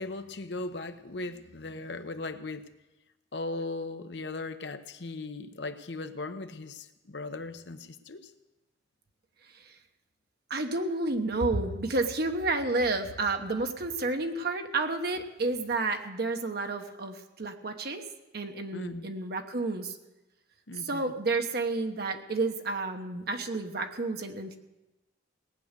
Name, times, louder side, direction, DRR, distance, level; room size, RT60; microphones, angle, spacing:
voice 1, 0.0-2.7 3.3-8.2 18.7-19.0 20.7-21.1, left 2 dB, 65° left, 9 dB, 0.9 m, -38 dB
voice 2, 10.5-18.0 18.3-20.0 20.8-24.6, right 3 dB, 55° right, 5 dB, 1.1 m, -30 dB
18.0 x 9.3 x 6.6 m, 1.0 s
head